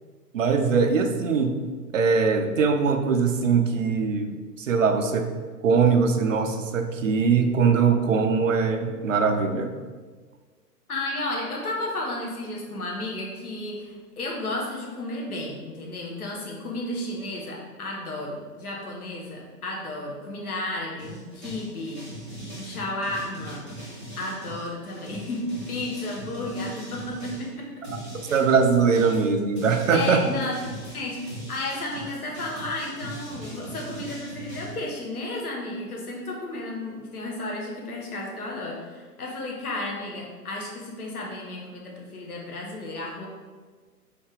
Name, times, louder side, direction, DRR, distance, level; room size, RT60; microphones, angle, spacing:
voice 1, 0.3-1.6 1.9-5.3 5.6-9.8 27.9-28.0 28.3-30.2, right 5 dB, 55° right, 6 dB, 0.5 m, -22 dB
voice 2, 10.9-22.0 22.6-23.7 24.2-27.9 29.9-30.5 30.9-31.2 31.5-43.3, left 2 dB, 65° left, -1 dB, 1.2 m, -33 dB
sound 1, 21.0-27.5 27.8-34.7, right 1 dB, ahead, 0.5 m, -40 dB
3.9 x 3.7 x 3.6 m, 1.5 s
figure-of-eight pair, 120°, 48 cm